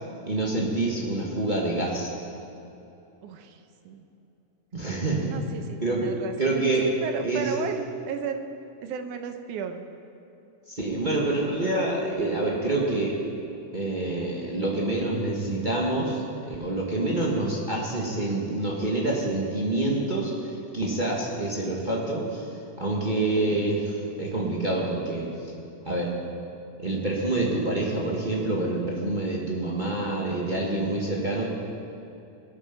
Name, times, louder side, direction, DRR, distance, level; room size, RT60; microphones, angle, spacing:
voice 1, 0.2-2.1 4.7-5.3 5.8-6.9 7.2-7.5 10.7-13.2 13.7-22.5 22.8-25.3 25.8-26.2 26.8-31.5, right 2 dB, 45° right, -3 dB, 0.6 m, -27 dB
voice 2, 3.2-4.1 5.3-8.5 8.8-9.9, right 7 dB, 75° right, 7 dB, 2.2 m, -35 dB
20.5 x 9.0 x 5.9 m, 2.9 s
omnidirectional pair, 3.8 m